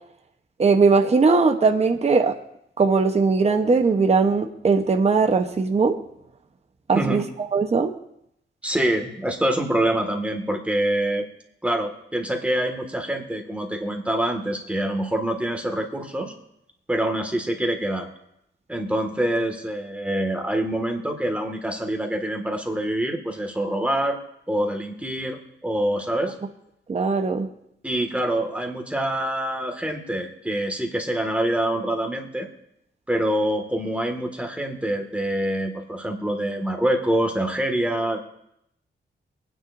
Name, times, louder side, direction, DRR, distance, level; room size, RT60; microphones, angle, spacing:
voice 1, 0.6-2.3 2.8-6.0 6.9-7.2 7.5-7.9 26.9-27.5, right 4 dB, 35° right, 5 dB, 1.0 m, -19 dB
voice 2, 8.6-11.3 11.6-16.3 16.9-18.1 18.7-24.2 24.5-26.4 27.8-32.5 33.1-38.2, right 1 dB, 5° right, 3 dB, 2.0 m, -25 dB
23.5 x 9.8 x 2.7 m, 0.77 s
cardioid pair, 100°, 19 cm